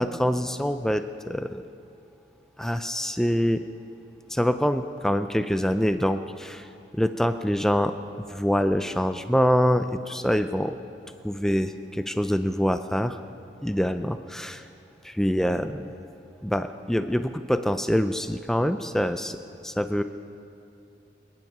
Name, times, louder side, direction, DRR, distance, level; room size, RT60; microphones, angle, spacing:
voice 1, 0.0-1.6 2.6-3.6 4.3-6.7 6.9-8.0 8.3-10.8 11.2-13.2 13.6-14.6 15.0-15.9 16.4-19.4 19.6-20.0, equal, 5° left, 9 dB, 0.4 m, -25 dB
24.5 x 11.0 x 5.4 m, 2.6 s
head